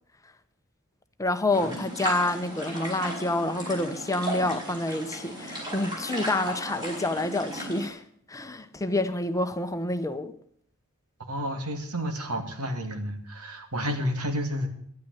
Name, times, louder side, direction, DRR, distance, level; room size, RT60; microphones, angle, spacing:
voice 1, 1.2-8.0 8.3-10.3, left 2 dB, 15° left, 0.8 m, -28 dB
sound 1, 1.5-7.9, equal, 20° right, 5.2 m, -35 dB
voice 2, 11.3-14.7, equal, 85° right, 2.3 m, -31 dB
10.5 x 9.4 x 9.9 m
head